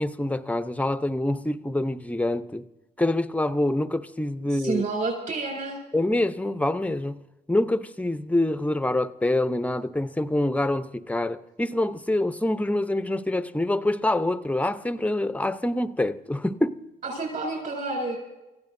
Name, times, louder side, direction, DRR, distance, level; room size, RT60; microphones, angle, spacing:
voice 1, 0.0-2.6 3.0-4.8 5.9-7.2 7.5-16.8, left 1 dB, 5° left, 0.8 m, -26 dB
voice 2, 4.5-5.8 17.0-18.2, right 3 dB, 45° right, 7.5 m, -29 dB
29.0 x 15.5 x 2.7 m
cardioid pair, 90°, 20 cm